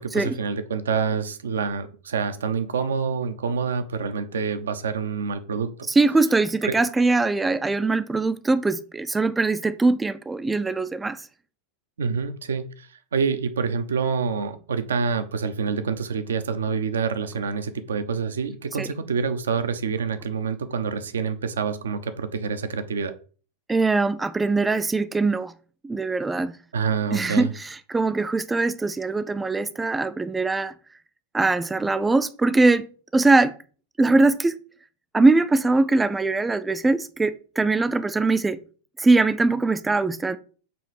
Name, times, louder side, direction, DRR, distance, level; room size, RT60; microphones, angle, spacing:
voice 1, 0.0-5.9 6.6-6.7 12.0-23.1 26.7-27.5, right 5 dB, 65° right, 0.6 m, -27 dB
voice 2, 5.9-11.3 18.8-18.9 23.7-25.5 25.8-26.6 27.1-30.7 31.3-32.9 33.1-33.5 34.0-34.6 35.1-38.6 39.0-40.4, right 3 dB, 10° right, 0.4 m, -22 dB
6.9 x 3.2 x 4.9 m
figure-of-eight pair, 90°, 0 cm